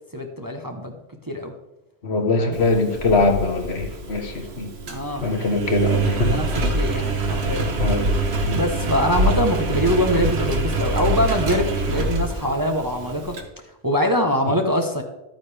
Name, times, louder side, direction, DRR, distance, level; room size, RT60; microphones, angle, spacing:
voice 1, 0.1-1.0 1.3-1.5 2.4-2.6 4.9-5.3 6.3-7.7 8.5-13.4 13.8-15.0, equal, 20° right, 3 dB, 0.9 m, -23 dB
voice 2, 2.0-4.7 5.2-6.3 7.8-8.1 8.5-8.6 14.5-14.6, left 3 dB, 65° left, 4 dB, 1.5 m, -22 dB
Engine, 2.5-13.4, right 2 dB, 65° right, 1.5 m, -25 dB
12.0 x 9.1 x 3.4 m, 0.98 s
omnidirectional pair, 1.2 m